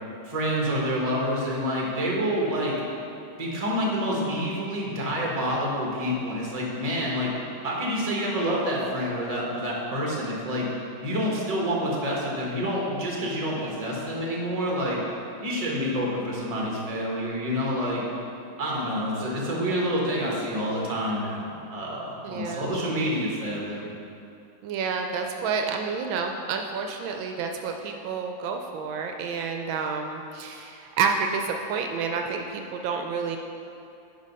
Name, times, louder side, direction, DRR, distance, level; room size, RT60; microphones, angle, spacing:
voice 1, 0.3-2.8 3.4-7.3 7.6-10.7 11.0-15.0 15.4-18.0 18.6-23.9, equal, 20° right, -3 dB, 1.1 m, -28 dB
voice 2, 22.2-22.7 24.6-33.4, right 5 dB, 80° right, 4 dB, 1.3 m, -29 dB
9.8 x 4.0 x 5.5 m, 2.6 s
omnidirectional pair, 2.2 m